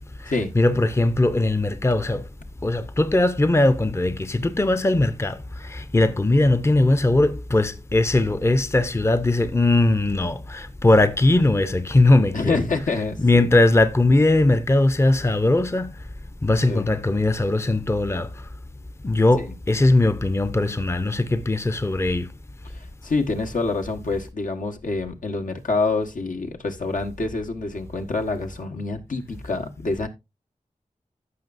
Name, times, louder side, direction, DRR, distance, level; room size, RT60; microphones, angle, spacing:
voice 1, 0.5-2.2 2.6-5.4 5.7-12.6 13.2-15.9 16.4-18.3 19.0-22.3, left 2 dB, 20° left, 0.6 m, -19 dB
voice 2, 12.3-13.5 16.7-16.9 19.4-19.5 22.7-30.1, left 3 dB, 75° left, 1.4 m, -27 dB
15.0 x 5.9 x 2.6 m
wide cardioid pair, 90°, 14 cm